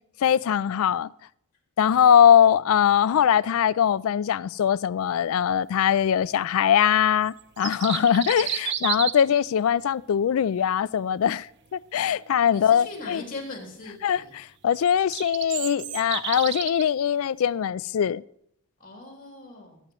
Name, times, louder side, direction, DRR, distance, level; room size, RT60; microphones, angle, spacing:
voice 1, 0.2-1.1 1.8-11.5 11.7-13.2 14.0-18.2, left 8 dB, 70° left, 0.3 m, -21 dB
sound 1, 7.4-9.4 14.7-16.8, right 9 dB, 50° right, 0.6 m, -31 dB
voice 2, 12.5-14.3 18.8-19.8, left 2 dB, 35° left, 2.8 m, -40 dB
19.5 x 9.0 x 3.0 m
head